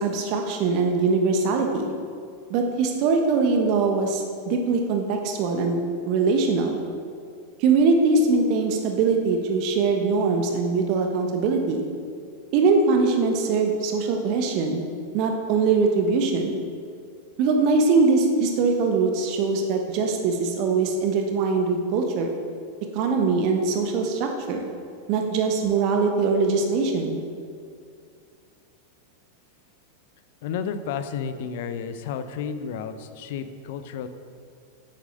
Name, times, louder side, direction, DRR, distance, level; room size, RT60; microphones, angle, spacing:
voice 1, 0.0-1.9 2.5-6.8 7.6-11.9 12.5-14.8 15.1-16.6 17.4-22.3 22.9-24.7 25.1-27.2, right 4 dB, 45° right, 3 dB, 1.2 m, -22 dB
voice 2, 30.4-34.1, left 7 dB, 50° left, 10 dB, 0.8 m, -32 dB
10.5 x 8.2 x 6.5 m, 2.3 s
figure-of-eight pair, 90°, 0 cm